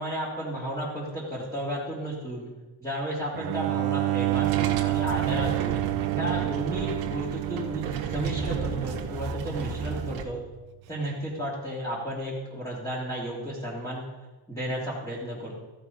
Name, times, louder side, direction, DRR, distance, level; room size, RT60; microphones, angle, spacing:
voice 1, 0.0-2.5 2.8-5.8 6.2-10.4 10.9-14.0 14.5-15.6, equal, 5° left, -9 dB, 3.2 m, -33 dB
Bowed string instrument, 3.3-10.4, right 20 dB, 55° right, 0.5 m, -29 dB
sound 1, 4.2-10.2, right 6 dB, 75° right, 1.5 m, -33 dB
14.5 x 6.5 x 5.2 m, 1.2 s
cardioid pair, 100°, 47 cm